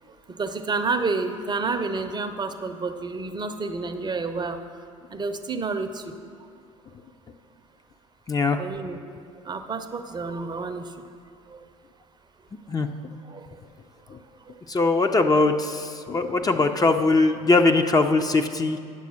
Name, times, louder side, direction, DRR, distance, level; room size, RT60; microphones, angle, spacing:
voice 1, 0.3-4.6 5.1-6.1 8.6-9.0 9.4-11.0 11.5-11.6 13.2-13.6, right 4 dB, 25° right, 8 dB, 0.7 m, -29 dB
voice 2, 8.3-8.6 12.7-12.9 14.1-14.2 14.7-18.8, left 3 dB, 20° left, 6 dB, 0.6 m, -21 dB
9.7 x 6.6 x 6.3 m, 2.3 s
hypercardioid pair, 65°, 18 cm